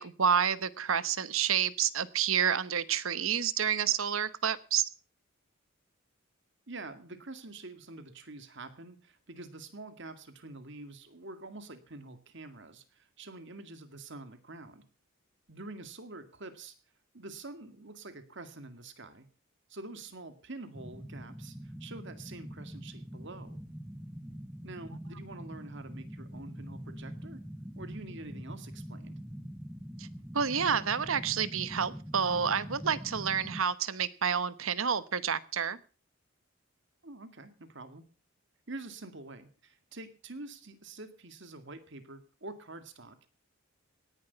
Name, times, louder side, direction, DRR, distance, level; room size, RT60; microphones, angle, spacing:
voice 1, 0.0-4.8 30.0-30.1 30.3-35.8, right 7 dB, 75° right, 16 dB, 1.0 m, -29 dB
voice 2, 6.7-14.9 15.5-16.8 17.1-19.3 19.7-23.6 24.6-27.4 27.8-29.2 37.0-38.0 38.7-43.3, right 2 dB, 60° right, 10 dB, 2.1 m, -46 dB
sound 1, 20.7-33.6, equal, 5° right, 0.7 m, -44 dB
18.0 x 11.0 x 5.7 m, 0.37 s
head